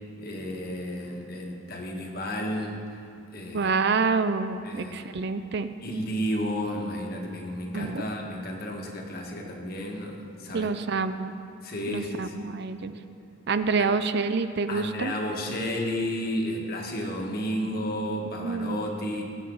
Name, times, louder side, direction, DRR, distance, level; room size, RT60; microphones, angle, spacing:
voice 1, 0.2-2.8 3.3-3.7 4.6-5.2 5.8-10.7 11.6-12.6 13.8-13.9 14.7-19.2, equal, 45° left, 0 dB, 1.6 m, -32 dB
voice 2, 3.5-5.7 7.7-8.0 10.5-11.3 11.9-12.9 13.5-15.1 18.4-18.8, right 4 dB, 55° right, 11 dB, 0.5 m, -27 dB
20.0 x 8.7 x 3.9 m, 2.5 s
head